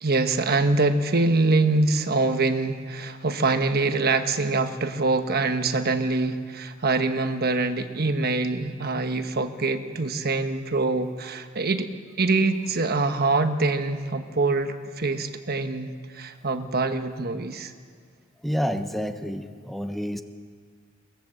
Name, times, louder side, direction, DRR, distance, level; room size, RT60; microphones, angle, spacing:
voice 1, 0.0-11.9 12.2-17.7, right 3 dB, 50° right, 8 dB, 1.1 m, -24 dB
voice 2, 18.4-20.2, equal, ahead, 7 dB, 0.9 m, -29 dB
23.0 x 20.0 x 7.7 m, 2.1 s
head